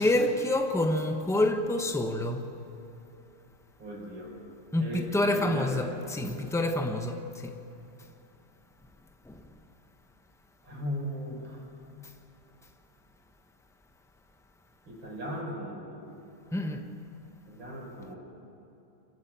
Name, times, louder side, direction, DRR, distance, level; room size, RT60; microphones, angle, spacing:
voice 1, 0.0-2.4 4.7-7.2 16.5-16.8, left 1 dB, ahead, 0.9 m, -27 dB
voice 2, 3.8-4.4 4.8-5.9 10.6-11.6 14.9-16.0 17.5-18.2, equal, 75° right, 5.7 m, -37 dB
27.0 x 15.0 x 8.7 m
omnidirectional pair, 2.1 m